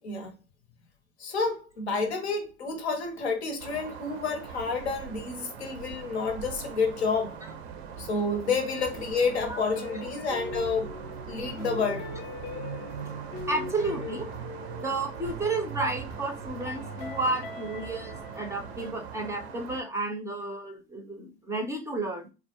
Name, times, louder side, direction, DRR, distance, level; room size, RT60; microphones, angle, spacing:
voice 1, 0.0-0.3 1.2-7.4 8.0-11.0 11.3-12.1, left 4 dB, 90° left, 0.7 m, -29 dB
sound 1, 3.6-19.8, right 7 dB, 75° right, 0.5 m, -41 dB
sound 2, 8.0-18.9, left 5 dB, 50° left, 0.5 m, -43 dB
voice 2, 13.5-14.3 14.8-22.3, right 2 dB, 10° right, 0.4 m, -32 dB
2.2 x 2.0 x 2.8 m
hypercardioid pair, 85°, 32 cm